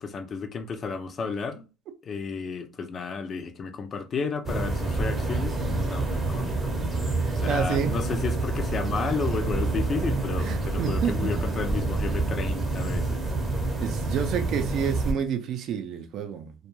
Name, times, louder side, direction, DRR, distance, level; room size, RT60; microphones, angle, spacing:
voice 1, 0.0-1.7 2.0-7.1 7.3-13.2, left 5 dB, 35° left, 0.4 m, -32 dB
sound 1, 4.5-15.1, right 2 dB, 20° right, 0.7 m, -27 dB
voice 2, 7.2-7.9 10.4-11.3 13.8-16.5, right 7 dB, 55° right, 0.5 m, -29 dB
2.3 x 2.2 x 3.0 m
supercardioid pair, 100°, 0 cm